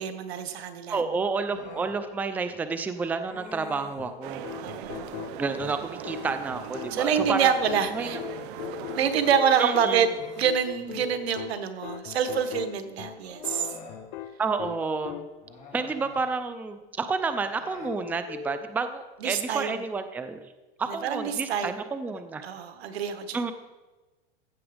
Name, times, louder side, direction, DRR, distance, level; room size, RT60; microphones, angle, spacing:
voice 1, 0.0-1.0 4.6-5.2 6.9-8.2 9.0-10.1 10.4-13.7 19.2-19.8 20.9-21.8 22.4-23.4, right 7 dB, 90° right, 9 dB, 1.4 m, -26 dB
voice 2, 0.9-4.5 5.4-7.5 7.9-8.2 9.6-10.1 14.4-15.3 15.7-20.4 20.8-22.5 23.3-23.5, right 4 dB, 5° right, 10 dB, 0.4 m, -30 dB
Human voice, 1.4-2.0 3.2-4.1 4.8-5.3 7.3-9.0 9.4-9.5 10.0-11.2 12.4-12.5 13.2-14.0 15.4-16.2 17.3-17.9, left 3 dB, 25° left, 3.3 m, -47 dB
sound 1, 4.0-15.6 17.8-18.7, left 10 dB, 60° left, 0.8 m, -40 dB
sound 2, 4.2-9.3, right 12 dB, 55° right, 0.7 m, -40 dB
15.0 x 6.9 x 5.0 m, 1.1 s
supercardioid pair, 140°, 30 cm